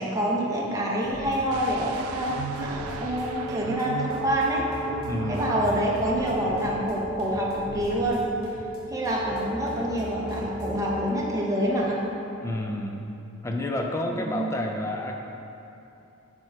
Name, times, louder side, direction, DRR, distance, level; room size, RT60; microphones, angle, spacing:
voice 1, 0.0-4.7 5.3-8.2 8.9-12.0 14.2-14.5, equal, 15° right, -4 dB, 0.7 m, -27 dB
sound 1, 1.0-10.9, equal, 85° left, 1.1 m, -41 dB
sound 2, 1.5-7.2 7.5-7.8, right 5 dB, 90° right, 0.3 m, -37 dB
sound 3, 2.8-11.8, right 1 dB, 55° left, 0.9 m, -38 dB
voice 2, 5.1-5.5 12.4-13.0 13.4-15.2, left 1 dB, 15° left, 2 dB, 0.3 m, -29 dB
5.8 x 4.4 x 4.6 m, 2.8 s
head